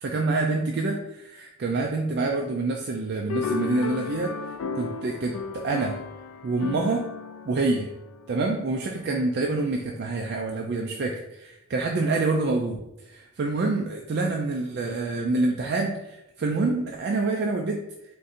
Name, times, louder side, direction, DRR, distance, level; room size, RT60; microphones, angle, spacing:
voice 1, 0.0-4.3 4.8-6.0 6.4-7.0 7.5-7.9 8.3-12.8 13.1-17.8, right 3 dB, 50° right, 1 dB, 0.3 m, -27 dB
sound 1, 3.3-8.9, left 5 dB, 75° left, 0.3 m, -34 dB
3.8 x 2.5 x 4.1 m, 0.90 s
head